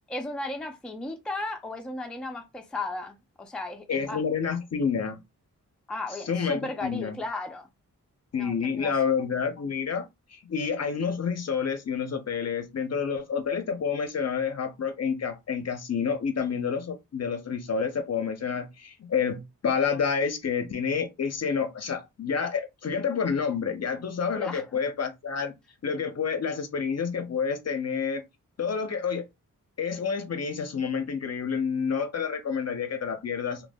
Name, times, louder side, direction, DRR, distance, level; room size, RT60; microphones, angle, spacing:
voice 1, 0.1-4.2 5.9-7.7 8.3-8.9 24.4-24.7, left 2 dB, 5° left, 0.4 m, -35 dB
voice 2, 3.9-5.2 6.1-7.2 8.3-25.5 25.8-28.2 28.6-29.2 29.8-33.7, left 6 dB, 50° left, 0.5 m, -29 dB
2.1 x 2.0 x 3.3 m
wide cardioid pair, 115°, 34 cm